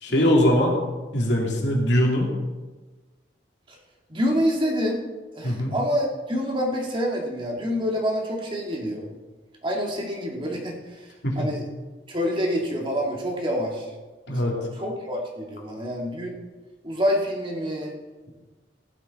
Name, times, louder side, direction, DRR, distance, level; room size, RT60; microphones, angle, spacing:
voice 1, 0.0-0.7 1.1-2.3 5.4-5.7 11.2-11.5 14.3-14.5, equal, 70° left, -1 dB, 2.9 m, -21 dB
voice 2, 4.1-5.0 5.3-9.1 9.6-11.1 11.4-11.6 12.1-13.9 14.3-16.4 16.8-17.9, equal, 30° right, -1 dB, 2.3 m, -27 dB
16.0 x 11.0 x 4.2 m, 1.2 s
head